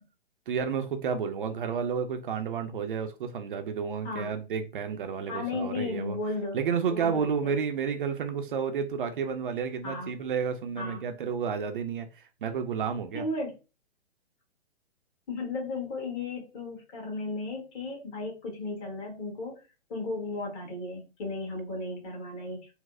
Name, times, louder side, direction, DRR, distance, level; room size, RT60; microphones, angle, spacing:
voice 1, 0.5-6.2 6.5-13.2, right 6 dB, 50° right, 6 dB, 0.5 m, -31 dB
voice 2, 5.3-6.6 6.9-7.6 9.8-10.1 10.8-11.0 13.1-13.6 15.3-19.6 19.9-22.6, left 2 dB, 30° left, -1 dB, 1.3 m, -35 dB
4.0 x 2.0 x 2.5 m, 0.31 s
figure-of-eight pair, 125°, 34 cm